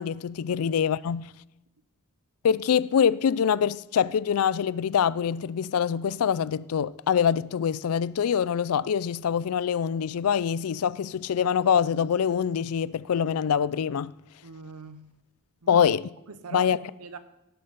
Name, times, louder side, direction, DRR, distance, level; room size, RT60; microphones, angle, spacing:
voice 1, 0.0-1.3 2.4-14.1 15.7-16.1 16.5-16.8, left 7 dB, 70° left, 0.4 m, -24 dB
voice 2, 14.4-15.1 15.6-15.8 16.3-17.2, right 4 dB, 85° right, 0.8 m, -41 dB
17.5 x 6.7 x 5.3 m
head